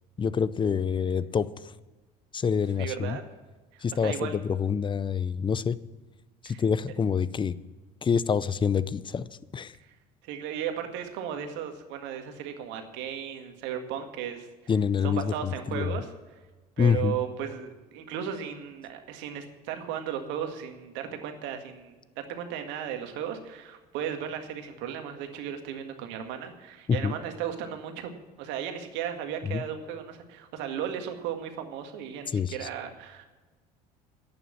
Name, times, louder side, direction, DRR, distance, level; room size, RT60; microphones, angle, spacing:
voice 1, 0.2-1.5 2.3-3.2 3.8-5.8 6.4-7.6 8.0-9.2 9.5-9.7 14.7-15.9 16.8-17.2 26.9-27.1 29.4-29.6 32.3-32.5, left 6 dB, 25° left, 18 dB, 0.6 m, -26 dB
voice 2, 2.8-3.2 3.7-4.4 6.5-6.6 9.8-10.0 10.2-14.5 15.0-16.1 16.8-28.1 28.4-33.2, right 9 dB, 60° right, 6 dB, 1.9 m, -35 dB
11.0 x 8.9 x 7.3 m, 1.2 s
hypercardioid pair, 70°, 21 cm